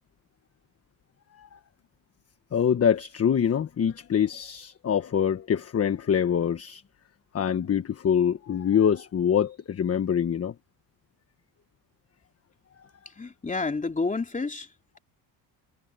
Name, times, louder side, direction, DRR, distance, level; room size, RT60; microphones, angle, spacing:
voice 1, 2.5-6.8 7.3-10.5, left 8 dB, 35° left, 1.3 m, -25 dB
voice 2, 13.2-14.7, left 3 dB, 20° left, 3.0 m, -29 dB
cardioid pair, 105°, 41 cm